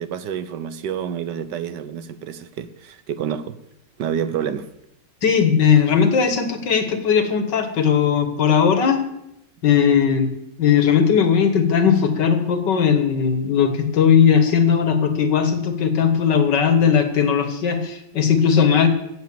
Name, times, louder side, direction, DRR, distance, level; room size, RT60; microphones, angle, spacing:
voice 1, 0.0-3.6 4.0-4.7, right 8 dB, 70° right, 1.3 m, -28 dB
voice 2, 5.2-9.0 9.6-10.3 10.6-18.9, left 7 dB, 65° left, 2.1 m, -18 dB
15.5 x 8.0 x 7.0 m
omnidirectional pair, 2.0 m